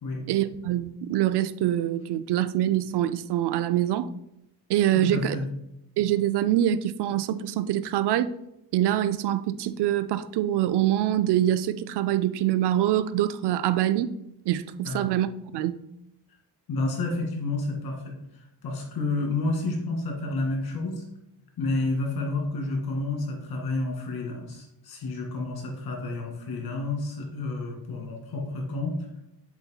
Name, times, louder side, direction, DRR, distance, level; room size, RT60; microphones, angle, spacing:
voice 1, 0.3-4.1 4.7-5.4 6.0-8.3 8.7-14.1 14.5-15.3 15.5-15.8, right 12 dB, 75° right, 0.5 m, -25 dB
voice 2, 4.9-5.4 14.8-15.1 16.7-18.1 18.6-21.0 21.6-28.9, left 2 dB, 60° left, 2.2 m, -30 dB
8.0 x 7.0 x 2.2 m
cardioid pair, 160°, 41 cm